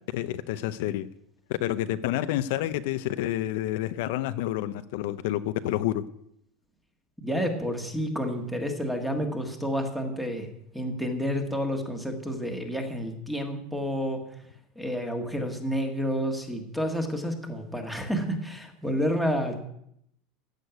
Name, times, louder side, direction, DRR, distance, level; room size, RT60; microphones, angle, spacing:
voice 1, 0.1-1.1 1.6-6.0, left 13 dB, 60° left, 11 dB, 0.6 m, -29 dB
voice 2, 7.2-10.5 10.7-14.2 14.7-19.6, equal, ahead, 5 dB, 1.6 m, -30 dB
15.0 x 6.4 x 9.4 m, 0.74 s
supercardioid pair, 180°, 0 cm